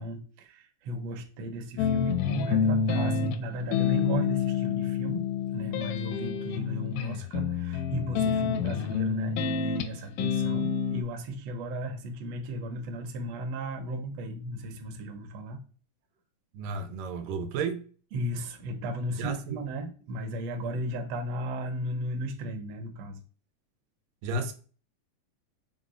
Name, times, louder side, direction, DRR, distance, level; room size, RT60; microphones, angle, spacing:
voice 1, 0.0-5.3 5.5-15.6 18.1-23.2, right 1 dB, 70° right, 1.6 m, -35 dB
sound 1, 1.8-11.0, left 7 dB, 85° left, 2.1 m, -28 dB
voice 2, 16.5-17.8 19.2-19.6 24.2-24.5, right 3 dB, 90° right, 2.3 m, -32 dB
5.7 x 2.1 x 3.6 m
omnidirectional pair, 3.7 m